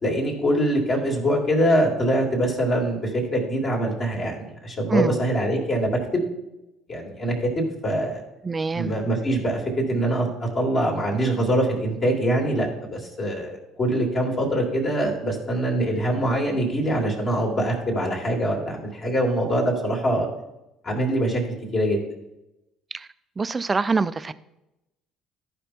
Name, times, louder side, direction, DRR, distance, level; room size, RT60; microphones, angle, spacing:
voice 1, 0.0-6.2 6.9-8.2 8.7-9.6 9.9-20.3 20.8-21.4 21.7-22.0, right 1 dB, 45° left, -1 dB, 3.2 m, -24 dB
voice 2, 8.4-8.9 22.9-23.1 23.4-24.3, right 4 dB, 25° right, 14 dB, 0.5 m, -24 dB
14.5 x 5.0 x 4.5 m, 0.92 s
hypercardioid pair, 55°, 0 cm